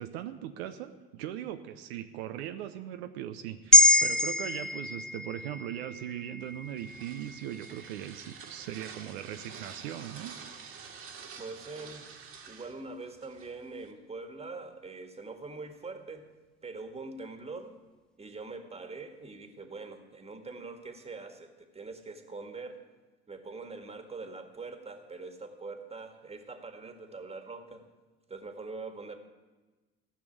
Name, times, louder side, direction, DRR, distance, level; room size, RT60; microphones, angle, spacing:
voice 1, 0.0-10.3, right 11 dB, 80° right, 8 dB, 0.7 m, -39 dB
sound 1, 3.7-8.2 8.6-8.7, left 2 dB, 5° left, 0.5 m, -26 dB
sound 2, 6.4-13.9, right 5 dB, 45° right, 1.8 m, -48 dB
voice 2, 11.4-12.1 12.5-16.3 16.6-17.7 18.2-22.8 23.3-27.8 28.3-29.2, right 3 dB, 20° right, 6 dB, 1.8 m, -43 dB
15.0 x 6.1 x 9.0 m, 1.2 s
hypercardioid pair, 70°, 31 cm